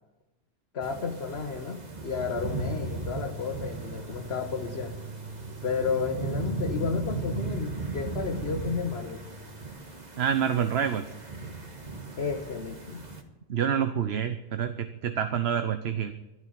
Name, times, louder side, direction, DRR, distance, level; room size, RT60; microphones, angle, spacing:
voice 1, 0.7-4.9 5.6-9.2 12.2-13.0, left 5 dB, 70° left, 2 dB, 1.5 m, -32 dB
sound 1, 0.8-13.2, right 3 dB, 40° right, 1.7 m, -37 dB
Tools, 2.4-9.7, right 2 dB, 10° right, 2.4 m, -44 dB
voice 2, 10.2-11.1 13.5-16.1, right 8 dB, 70° right, 9 dB, 1.1 m, -27 dB
12.5 x 12.5 x 8.7 m, 1.1 s
omnidirectional pair, 1.1 m